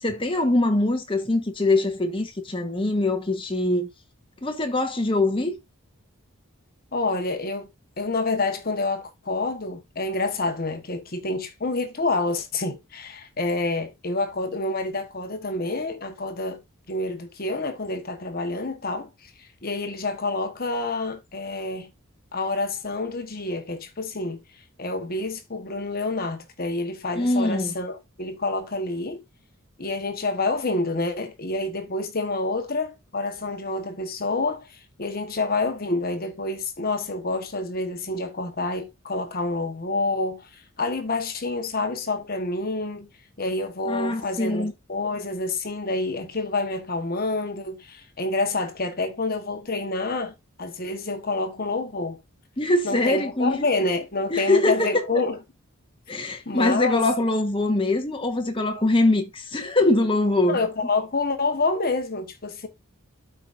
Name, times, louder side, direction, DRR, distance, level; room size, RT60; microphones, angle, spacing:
voice 1, 0.0-3.9 4.4-5.6 27.2-27.7 43.9-44.7 52.6-53.6 54.3-54.9 56.1-60.6, left 2 dB, 25° left, 1.2 m, -23 dB
voice 2, 6.9-7.7 8.0-16.6 16.9-21.9 22.3-24.4 24.8-29.2 29.8-43.1 43.4-52.2 52.8-55.4 56.5-57.1 60.5-62.7, left 3 dB, 45° left, 1.2 m, -28 dB
12.5 x 4.8 x 2.5 m
head